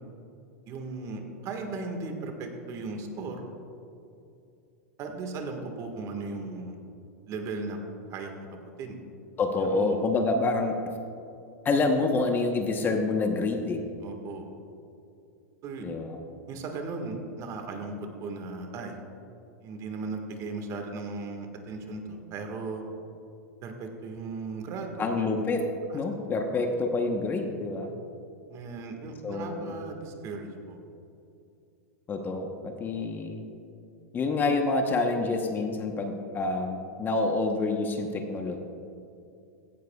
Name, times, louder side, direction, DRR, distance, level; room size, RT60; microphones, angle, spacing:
voice 1, 0.7-3.4 5.0-6.8 7.3-7.8 8.1-9.0 9.7-10.1 14.0-14.5 15.6-15.9 16.5-18.9 19.6-22.8 23.6-25.1 25.9-26.0 28.5-30.8, right 3 dB, 40° right, 4 dB, 1.7 m, -37 dB
voice 2, 9.4-10.8 11.6-13.8 15.8-16.2 25.0-25.6 25.9-27.9 29.2-29.7 32.1-33.4 34.1-38.6, left 3 dB, 25° left, 4 dB, 1.0 m, -27 dB
16.0 x 12.5 x 2.4 m, 2.6 s
hypercardioid pair, 120°, 8 cm